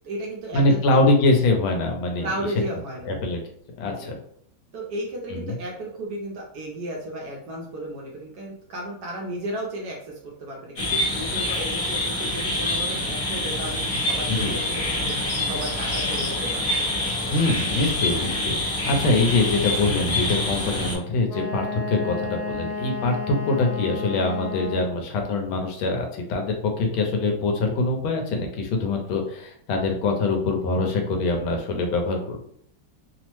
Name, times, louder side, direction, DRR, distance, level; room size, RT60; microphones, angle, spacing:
voice 1, 0.0-1.1 2.2-3.1 4.0-4.2 4.7-15.1 15.4-16.7, right 1 dB, 75° right, -1 dB, 0.9 m, -34 dB
voice 2, 0.5-2.3 3.1-3.4 3.8-4.2 5.3-5.5 14.3-14.6 17.3-32.4, left 2 dB, 85° left, 3 dB, 1.5 m, -24 dB
sound 1, 10.8-21.0, left 1 dB, 40° left, 1.0 m, -26 dB
Wind instrument woodwind instrument, 21.3-25.0, left 3 dB, 60° left, 1.4 m, -32 dB
3.4 x 2.0 x 3.0 m, 0.65 s
omnidirectional pair, 2.2 m